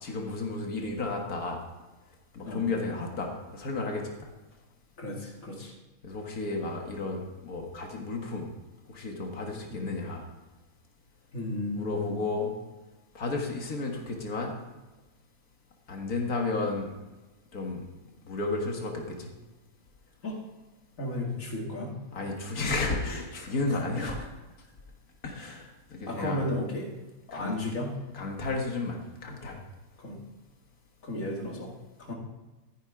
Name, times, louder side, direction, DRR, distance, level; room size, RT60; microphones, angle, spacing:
voice 1, 0.0-1.6 2.3-4.3 6.0-8.5 8.9-10.2 11.7-12.5 13.1-14.5 15.9-16.9 17.5-17.8 18.3-19.3 22.1-24.2 25.2-26.4 27.3-27.5 28.1-29.6, left 3 dB, 85° left, 1 dB, 2.1 m, -32 dB
voice 2, 5.0-5.8 9.7-9.9 11.3-12.3 20.2-20.4 21.0-22.0 23.7-24.2 26.1-26.9 27.3-27.9 30.0-30.2 31.0-32.1, left 1 dB, 65° left, -1 dB, 2.7 m, -34 dB
14.0 x 9.9 x 3.7 m, 1.1 s
omnidirectional pair, 1.5 m